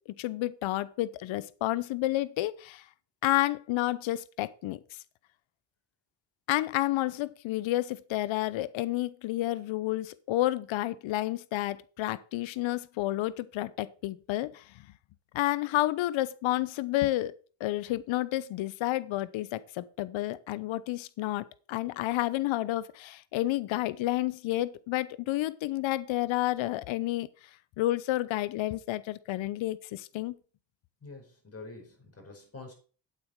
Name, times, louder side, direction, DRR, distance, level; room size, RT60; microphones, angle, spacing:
voice 1, 0.1-2.8 3.2-5.0 6.5-14.9 15.3-17.3 17.6-27.3 27.8-30.3, left 16 dB, 80° left, 18 dB, 0.8 m, -30 dB
voice 2, 31.0-32.7, left 3 dB, 30° left, 3 dB, 5.2 m, -46 dB
9.0 x 8.6 x 4.6 m, 0.39 s
cardioid pair, 90°, 45 cm